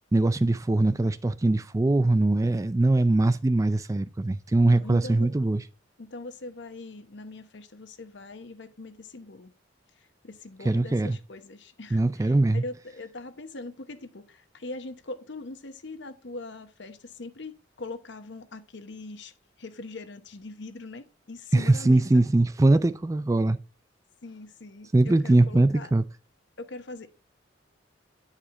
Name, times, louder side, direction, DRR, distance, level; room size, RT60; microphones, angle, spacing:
voice 1, 0.1-5.6 10.6-11.2 11.9-12.6 21.5-23.6 24.9-26.0, right 2 dB, 15° right, 0.3 m, -22 dB
voice 2, 4.6-5.3 6.0-9.5 10.0-19.3 19.6-22.2 24.2-25.9 26.6-27.1, left 2 dB, 60° left, 0.9 m, -41 dB
10.0 x 4.9 x 3.7 m
head